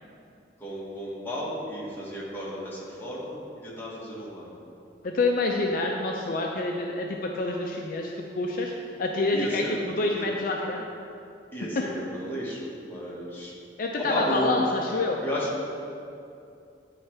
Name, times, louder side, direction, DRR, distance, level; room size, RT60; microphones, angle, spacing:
voice 1, 0.6-4.5 9.3-9.8 10.1-10.3 11.5-13.5 14.0-14.5 14.9-15.6, equal, 10° left, -7 dB, 1.4 m, -33 dB
voice 2, 5.0-8.7 9.0-10.8 11.8-11.9 13.8-15.2, left 2 dB, 50° left, 1 dB, 0.4 m, -27 dB
9.7 x 3.2 x 4.4 m, 2.6 s
head